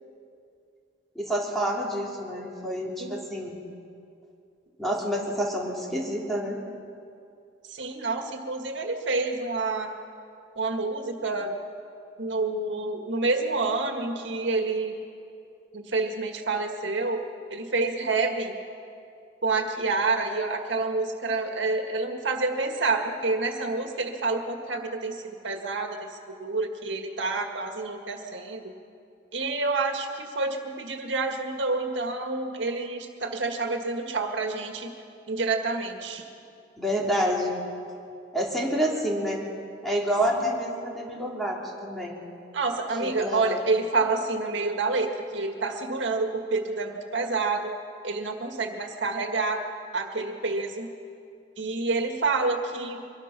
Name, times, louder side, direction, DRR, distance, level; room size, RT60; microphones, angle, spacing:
voice 1, 1.2-3.6 4.8-6.6 36.8-37.6 38.3-39.4 39.8-42.2 43.0-43.6, equal, ahead, -4 dB, 3.4 m, -28 dB
voice 2, 7.7-9.9 10.6-11.5 12.2-15.0 15.7-17.2 17.5-18.6 19.4-28.7 29.3-34.9 35.3-36.2 40.4-40.5 42.5-47.7 48.0-49.6 49.9-50.9 51.6-53.0, right 3 dB, 85° right, 4 dB, 1.8 m, -28 dB
24.0 x 20.5 x 6.0 m, 2.5 s
head